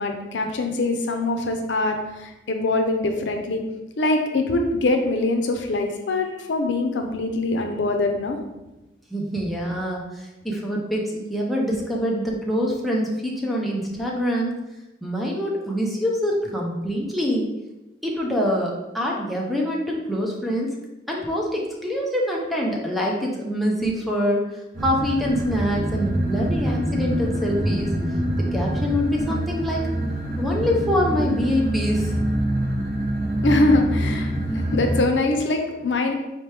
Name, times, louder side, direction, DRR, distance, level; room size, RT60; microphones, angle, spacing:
voice 1, 0.0-3.6 4.0-8.4 33.4-36.1, left 2 dB, 90° left, 4 dB, 0.5 m, -23 dB
voice 2, 9.1-14.5 15.0-17.5 18.0-20.7 21.1-24.4 24.8-27.9 28.4-29.9 30.4-32.3, equal, ahead, -2 dB, 0.6 m, -25 dB
sound 1, 24.7-35.0, right 1 dB, 55° right, 0.8 m, -25 dB
4.5 x 2.9 x 3.3 m, 1.0 s
head